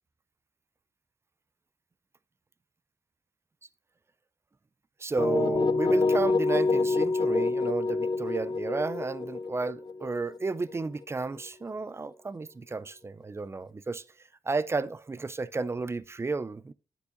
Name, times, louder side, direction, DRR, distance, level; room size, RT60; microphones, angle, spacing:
voice 1, 5.0-14.0 14.5-16.7, right 3 dB, 20° right, 0.3 m, -32 dB
sound 1, 5.2-11.0, left 3 dB, 35° left, 0.5 m, -27 dB
8.8 x 8.2 x 2.5 m
cardioid pair, 95°, 12 cm